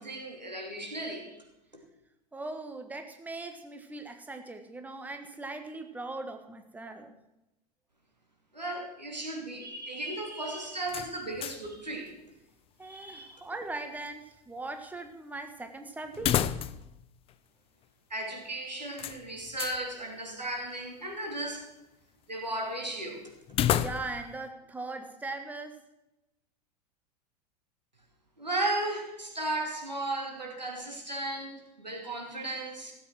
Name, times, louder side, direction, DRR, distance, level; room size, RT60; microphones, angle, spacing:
voice 1, 0.0-1.4 8.5-12.1 12.8-13.4 18.1-21.7 22.3-23.2 28.4-32.9, right 2 dB, 90° right, 1 dB, 2.9 m, -35 dB
voice 2, 2.3-7.1 12.8-16.4 23.8-25.8, right 2 dB, 5° right, 6 dB, 1.4 m, -40 dB
sound 1, 10.9-11.8 12.1-12.2 16.1-17.0 17.3-17.4 19.0-19.8 23.5-24.3, left 11 dB, 25° left, 0.5 m, -30 dB
16.0 x 7.7 x 6.2 m, 0.90 s
figure-of-eight pair, 85°, 21 cm